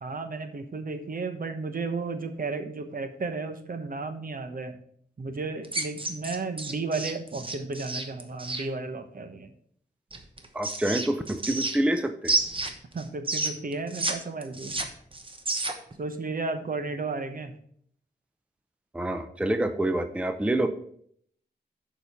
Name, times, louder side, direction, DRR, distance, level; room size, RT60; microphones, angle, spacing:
voice 1, 0.0-4.8 5.2-9.5 12.9-14.8 16.0-17.5, right 3 dB, 55° right, 8 dB, 0.9 m, -33 dB
sound 1, 5.6-8.6 10.1-12.0 12.2-14.1 14.4-15.9, right 2 dB, 30° right, 1.0 m, -30 dB
voice 2, 10.5-12.4 18.9-20.7, right 1 dB, 5° right, 9 dB, 0.5 m, -27 dB
6.9 x 5.1 x 5.7 m, 0.64 s
wide cardioid pair, 95°, 18 cm